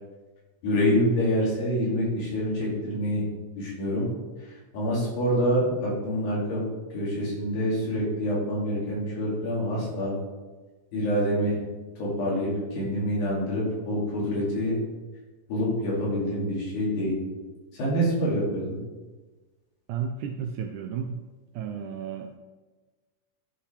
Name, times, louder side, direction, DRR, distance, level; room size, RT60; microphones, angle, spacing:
voice 1, 0.6-3.2 3.6-4.1 4.4-6.6 6.9-10.2 10.9-11.6 12.0-14.8 15.5-17.2 17.7-18.8, equal, 80° left, -6 dB, 4.3 m, -26 dB
voice 2, 19.9-21.2 21.6-22.3, right 7 dB, 85° right, 4 dB, 1.7 m, -33 dB
12.0 x 5.7 x 3.3 m, 1.3 s
omnidirectional pair, 4.0 m